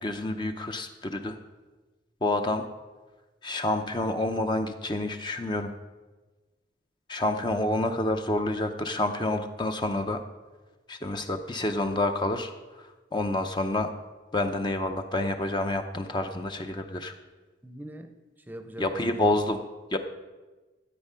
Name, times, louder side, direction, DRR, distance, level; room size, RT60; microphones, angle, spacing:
voice 1, 0.0-1.4 2.2-2.6 3.4-5.7 7.1-10.2 10.9-13.9 14.3-17.1 18.8-19.6 19.9-20.0, left 2 dB, 25° left, 6 dB, 0.6 m, -28 dB
voice 2, 17.6-19.4, right 1 dB, 10° right, 8 dB, 0.7 m, -43 dB
13.5 x 8.1 x 5.6 m, 1.2 s
head